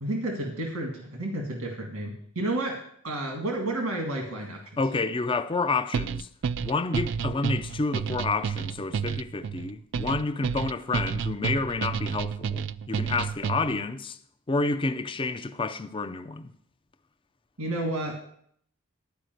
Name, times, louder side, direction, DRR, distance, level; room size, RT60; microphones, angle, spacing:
voice 1, 0.0-2.8 3.0-4.8 17.6-18.2, right 1 dB, 85° right, 1.9 m, -31 dB
voice 2, 4.8-6.3 6.6-14.2 14.5-16.5, left 3 dB, 25° left, 0.5 m, -29 dB
sound 1, 5.9-13.8, right 6 dB, 60° right, 0.3 m, -30 dB
11.5 x 5.0 x 7.8 m
head